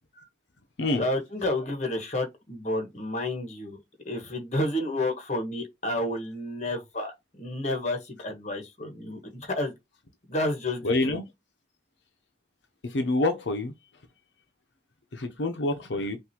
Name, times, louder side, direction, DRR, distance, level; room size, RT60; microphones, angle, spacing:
voice 1, 0.9-3.8 4.0-9.7 10.3-11.2, left 1 dB, 40° left, 1.4 m, -30 dB
voice 2, 10.8-11.2 12.9-13.7 15.2-16.2, left 2 dB, 80° left, 0.8 m, -26 dB
5.8 x 2.6 x 3.0 m
head